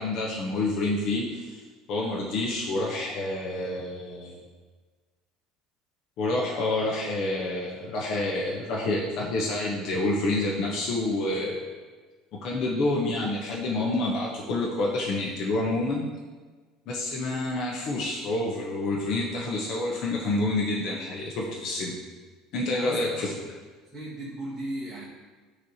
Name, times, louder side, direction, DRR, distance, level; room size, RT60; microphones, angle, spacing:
voice 1, 0.0-1.6 1.9-4.4 6.2-11.6 12.4-16.1 16.9-22.0 22.5-23.3, left 2 dB, 50° left, -3 dB, 0.9 m, -28 dB
voice 2, 22.7-23.4 23.8-25.1, right 1 dB, ahead, -9 dB, 1.5 m, -37 dB
9.3 x 3.3 x 4.2 m, 1.4 s
cardioid pair, 160°, 0 cm